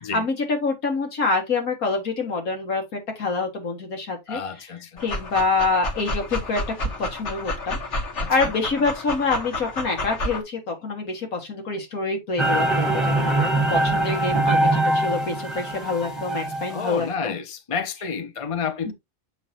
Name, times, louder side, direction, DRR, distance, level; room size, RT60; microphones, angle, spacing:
voice 1, 0.1-4.4 5.0-7.8 8.3-17.1, left 3 dB, 90° left, 2.3 m, -26 dB
voice 2, 4.3-5.0 8.2-8.5 16.7-18.9, left 6 dB, 30° left, 0.8 m, -30 dB
Dog, 5.0-10.4, left 1 dB, 55° left, 1.6 m, -30 dB
sound 1, 12.4-16.9, right 2 dB, ahead, 1.3 m, -23 dB
7.1 x 5.8 x 2.8 m
omnidirectional pair, 1.5 m